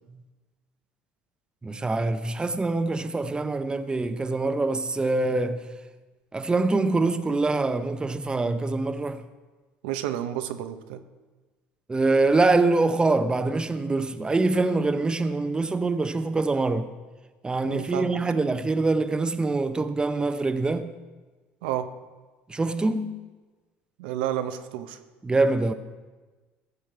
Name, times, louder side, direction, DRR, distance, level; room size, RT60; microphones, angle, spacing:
voice 1, 1.6-5.7 6.3-9.2 11.9-16.9 17.4-20.9 22.5-23.2 25.2-25.7, right 3 dB, 15° right, 0.7 m, -24 dB
voice 2, 9.8-11.0 17.6-18.2 21.6-21.9 24.0-25.0, right 11 dB, 85° right, 0.7 m, -30 dB
15.0 x 5.9 x 4.6 m
supercardioid pair, 90°, 5 cm